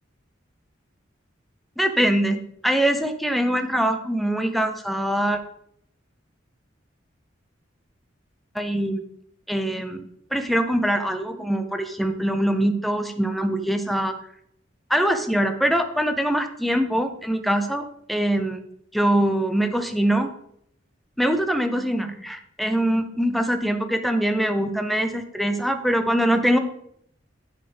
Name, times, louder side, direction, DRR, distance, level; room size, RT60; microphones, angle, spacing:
voice 1, 1.8-5.4 8.5-9.0 9.5-10.0 10.3-14.1 14.9-18.6 18.9-20.3 21.2-26.6, right 1 dB, ahead, 7 dB, 0.6 m, -23 dB
10.0 x 6.6 x 3.4 m, 0.72 s
head